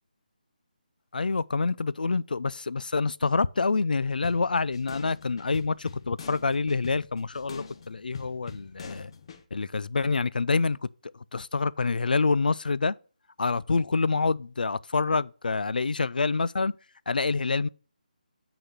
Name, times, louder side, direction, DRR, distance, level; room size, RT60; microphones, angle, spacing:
voice 1, 1.1-9.1 9.5-10.8 11.3-13.0 13.4-16.7 17.1-17.7, left 4 dB, 80° left, 0.4 m, -27 dB
sound 1, 4.2-9.4, left 5 dB, 35° left, 0.8 m, -44 dB
6.5 x 4.1 x 5.9 m
figure-of-eight pair, 165°, 5 cm